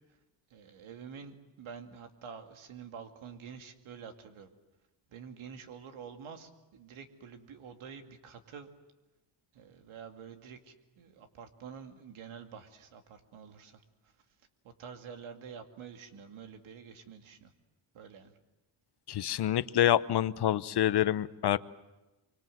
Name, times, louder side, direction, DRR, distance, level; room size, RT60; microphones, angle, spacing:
voice 1, 0.5-4.5 5.1-8.7 9.5-13.8 14.8-17.5 17.9-18.3, right 6 dB, 80° right, 6 dB, 2.4 m, -48 dB
voice 2, 19.1-21.6, left 11 dB, 55° left, 15 dB, 0.9 m, -27 dB
26.0 x 24.5 x 7.8 m, 1.0 s
cardioid pair, 105°, 48 cm